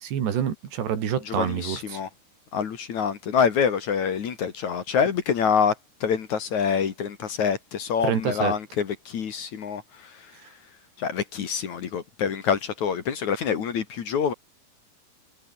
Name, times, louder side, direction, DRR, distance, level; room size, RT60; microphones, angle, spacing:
voice 1, 0.0-2.0 8.0-8.5, right 9 dB, 85° right, 5.2 m, -27 dB
voice 2, 1.2-2.1 2.5-5.8 6.0-10.3 11.0-14.3, left 7 dB, 50° left, 2.9 m, -26 dB
omnidirectional pair, 4.7 m